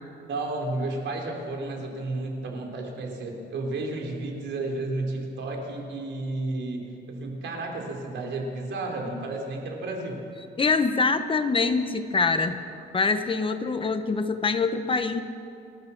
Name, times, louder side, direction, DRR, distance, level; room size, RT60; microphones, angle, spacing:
voice 1, 0.3-10.2, right 2 dB, 70° right, 1 dB, 4.3 m, -32 dB
voice 2, 10.6-12.6 12.9-15.2, left 4 dB, 25° left, 9 dB, 1.1 m, -24 dB
29.5 x 12.0 x 7.3 m, 2.6 s
cardioid pair, 125°, 20 cm